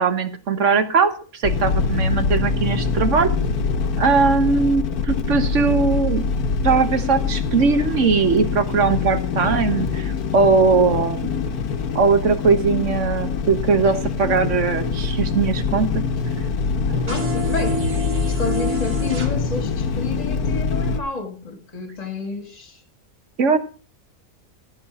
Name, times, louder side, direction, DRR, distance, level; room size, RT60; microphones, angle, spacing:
voice 1, 0.0-3.3 4.0-6.2 6.6-11.4 11.9-16.0 16.9-17.1 23.4-23.6, right 4 dB, 55° right, 1.6 m, -20 dB
sound 1, 1.4-21.0, left 5 dB, 85° left, 1.6 m, -24 dB
voice 2, 17.1-17.8 18.3-22.8, left 4 dB, 25° left, 1.6 m, -30 dB
sound 2, 17.1-19.3, right 2 dB, 85° right, 2.7 m, -28 dB
13.5 x 6.5 x 6.9 m
omnidirectional pair, 1.5 m